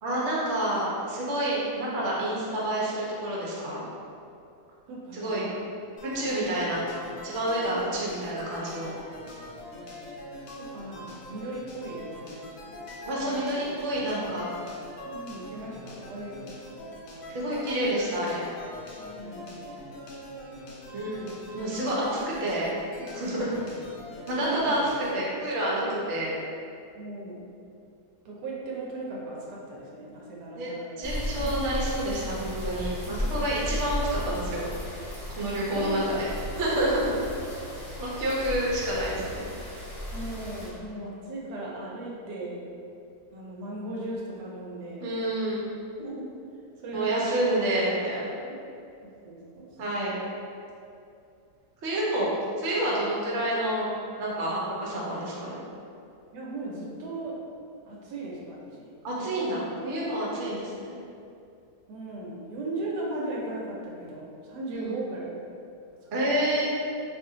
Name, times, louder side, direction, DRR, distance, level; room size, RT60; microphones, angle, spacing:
voice 1, 0.0-3.8 5.1-5.5 6.0-6.8 7.2-8.9 13.1-14.5 17.3-18.4 20.9-22.7 22.9-23.5 24.3-24.8 25.1-26.3 30.6-30.7 31.0-34.7 35.3-37.1 38.0-39.5 45.0-45.6 46.9-48.3 49.8-50.2 51.8-52.3 52.5-53.9 54.2-55.6 59.0-60.9 64.7-64.9 66.1-66.7, right 1 dB, 55° right, -5 dB, 0.9 m, -28 dB
voice 2, 4.9-5.5 6.0-6.1 6.3-6.5 7.7-7.8 10.6-12.7 14.1-14.3 15.0-16.9 19.0-19.5 23.4-23.6 24.5-24.8 25.8-26.1 26.9-27.4 28.2-31.0 31.4-31.5 33.0-33.2 35.6-36.1 40.1-42.6 43.3-45.1 46.0-46.3 46.8-47.3 48.4-48.6 49.0-49.8 56.3-57.4 57.8-59.5 61.9-65.3 66.0-66.4, right 2 dB, 80° right, -3 dB, 1.2 m, -37 dB
sound 1, 6.0-25.2, left 1 dB, 65° left, 0.9 m, -43 dB
sound 2, 31.0-40.7, equal, 20° left, 0.6 m, -35 dB
2.7 x 2.5 x 3.7 m, 2.5 s
omnidirectional pair, 1.8 m